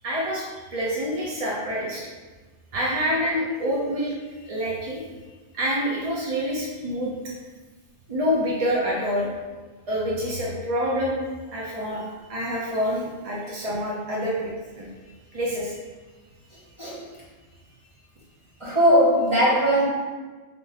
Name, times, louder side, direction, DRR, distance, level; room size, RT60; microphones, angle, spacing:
voice 1, 0.0-0.5 0.7-2.1 2.7-4.1 4.5-5.0 5.5-7.1 8.1-9.3 9.9-11.2 11.5-12.0 12.3-14.5 14.8-14.9 15.3-15.7, equal, 45° right, -5 dB, 0.5 m, -26 dB
voice 2, 18.6-19.9, equal, 25° right, -8 dB, 1.1 m, -19 dB
3.7 x 2.7 x 3.9 m, 1.3 s
omnidirectional pair, 1.3 m